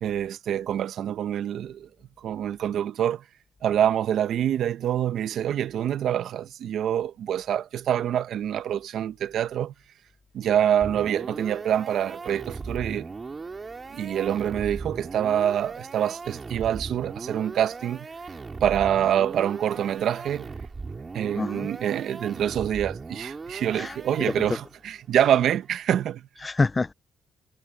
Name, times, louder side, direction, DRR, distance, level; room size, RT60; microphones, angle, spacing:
voice 1, 0.0-1.9 2.2-3.2 3.6-9.7 10.3-13.1 13.9-18.1 18.6-20.5 21.1-26.3, right 10 dB, 70° right, 1.1 m, -26 dB
sound 1, 10.8-24.9, right 4 dB, 30° right, 3.9 m, -38 dB
voice 2, 21.4-21.7 23.7-24.6 25.3-25.4 26.4-26.9, left 3 dB, 25° left, 0.6 m, -28 dB
cardioid pair, 90°, 0 cm